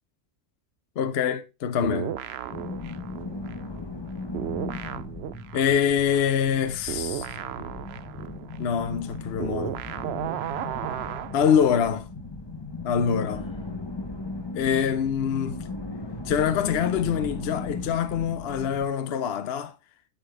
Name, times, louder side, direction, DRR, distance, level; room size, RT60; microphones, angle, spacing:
voice 1, 1.0-2.2 5.5-7.3 8.6-9.8 11.3-12.1 12.8-13.5 14.5-15.6 16.2-19.7, left 8 dB, 60° left, 0.9 m, -25 dB
sound 1, 1.8-4.1 4.3-11.9, right 11 dB, 65° right, 0.7 m, -35 dB
sound 2, 2.5-18.9, left 3 dB, 20° left, 0.9 m, -37 dB
Sigh, 13.1-13.8, right 5 dB, 5° left, 2.2 m, -49 dB
11.5 x 5.5 x 3.3 m
omnidirectional pair, 1.3 m